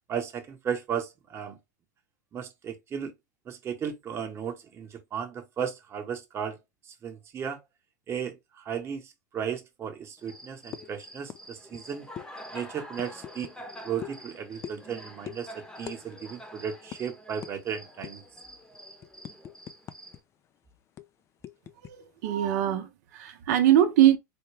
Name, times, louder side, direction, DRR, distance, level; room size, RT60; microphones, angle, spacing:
voice 1, 0.1-1.6 2.3-3.1 3.5-6.6 7.0-7.6 8.1-12.1 12.5-13.5 13.8-18.2, right 7 dB, 25° right, 1.0 m, -35 dB
Cricket, 10.2-20.2, equal, 5° left, 0.9 m, -47 dB
sound 1, 10.7-10.9 11.3-11.4 11.7-11.8 12.2-12.3 13.0-13.6 14.0-14.2 14.6-14.9 15.2-15.4 15.8-16.0 16.3-16.4 16.9-17.0 17.4-17.6 18.0-18.3 18.7-20.2 20.4-20.6 21.0-21.9, left 10 dB, 30° left, 0.4 m, -41 dB
voice 2, 22.2-24.2, right 11 dB, 60° right, 0.7 m, -22 dB
4.3 x 2.2 x 3.3 m
hypercardioid pair, 120°, 10 cm